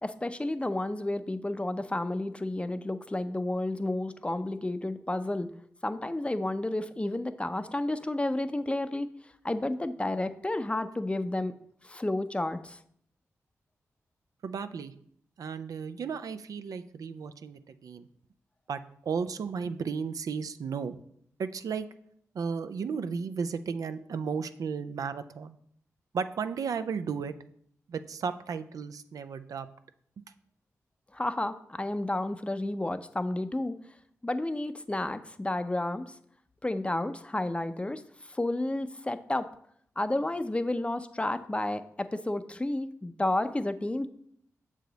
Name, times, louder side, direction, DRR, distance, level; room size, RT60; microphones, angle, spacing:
voice 1, 0.0-5.5 5.8-9.1 9.4-11.6 11.8-12.8 31.1-33.7 34.2-36.1 36.6-39.5 40.0-44.1, left 1 dB, 20° left, 11 dB, 0.5 m, -31 dB
voice 2, 14.4-14.9 15.4-18.1 18.7-20.9 21.4-21.9 22.3-25.6 26.1-27.3 27.9-29.7 30.2-30.3, right 6 dB, 75° right, 11 dB, 0.4 m, -34 dB
6.6 x 4.8 x 4.0 m, 0.67 s
cardioid pair, 45°, 6 cm